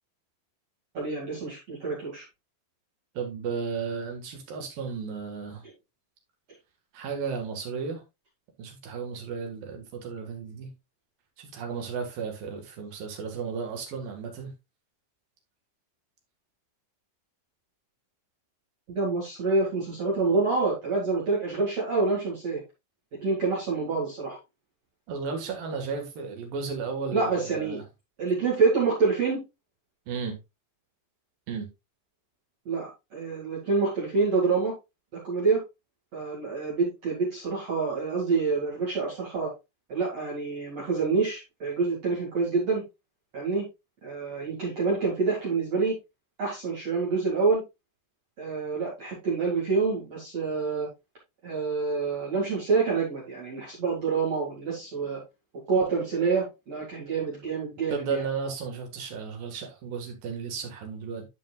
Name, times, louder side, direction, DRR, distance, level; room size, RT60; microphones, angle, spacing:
voice 1, 0.9-2.2 18.9-22.6 23.2-24.4 27.1-27.8 28.2-29.4 32.7-34.7 35.1-35.6 36.1-39.5 39.9-42.8 43.3-43.6 44.0-45.9 46.4-47.6 48.4-50.9 51.4-55.2 55.7-58.2, right 4 dB, 45° right, 2.5 m, -27 dB
voice 2, 3.1-5.6 6.9-8.0 8.6-10.7 11.4-14.5 25.1-27.8 30.1-30.4 31.5-31.7 57.9-61.3, right 5 dB, 60° right, 2.9 m, -34 dB
11.5 x 5.3 x 2.3 m
omnidirectional pair, 5.4 m